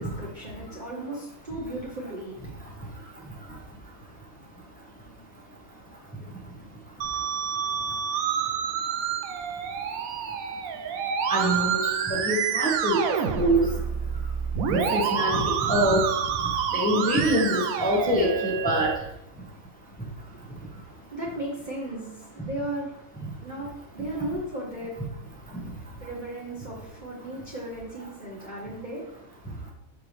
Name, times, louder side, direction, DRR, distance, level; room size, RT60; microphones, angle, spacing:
voice 1, 0.0-2.9 20.0-25.0 25.7-29.2, right 1 dB, 35° right, -4 dB, 1.0 m, -36 dB
Musical instrument, 7.0-19.0, right 7 dB, 75° right, 1.0 m, -28 dB
voice 2, 11.3-13.0 13.3-13.6 14.7-16.0 16.7-18.9, right 1 dB, 5° left, -3 dB, 1.1 m, -24 dB
6.9 x 4.5 x 3.3 m, 0.82 s
omnidirectional pair, 1.5 m